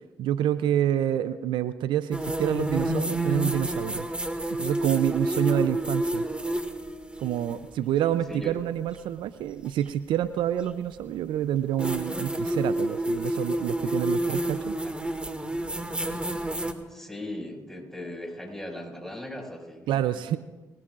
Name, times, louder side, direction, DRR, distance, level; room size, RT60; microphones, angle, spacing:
voice 1, 0.2-4.1 4.6-6.2 7.2-14.8 19.9-20.4, right 11 dB, 75° right, 13 dB, 0.5 m, -27 dB
sound 1, 2.1-7.6 9.6-9.7 11.8-16.7, right 1 dB, 15° right, 2.0 m, -29 dB
voice 2, 16.9-20.0, left 1 dB, 5° left, -1 dB, 5.9 m, -38 dB
25.0 x 18.5 x 2.5 m, 1.2 s
hypercardioid pair, 45°, 8 cm